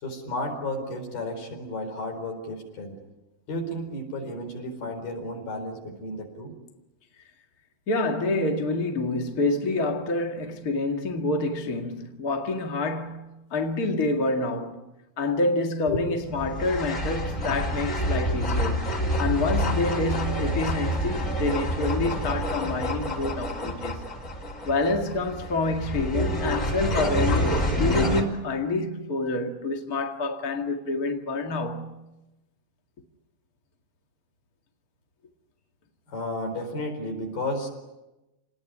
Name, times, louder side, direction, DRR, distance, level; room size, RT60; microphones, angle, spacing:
voice 1, 0.0-3.0 3.5-6.5 15.9-16.0 36.1-37.7, left 1 dB, 55° left, 6.3 m, -32 dB
voice 2, 7.9-14.9 15.2-18.9 19.2-24.0 24.6-32.0, left 2 dB, 70° left, 0.8 m, -27 dB
sound 1, 16.2-28.2, equal, 20° left, 3.0 m, -28 dB
29.0 x 19.5 x 9.9 m
omnidirectional pair, 5.2 m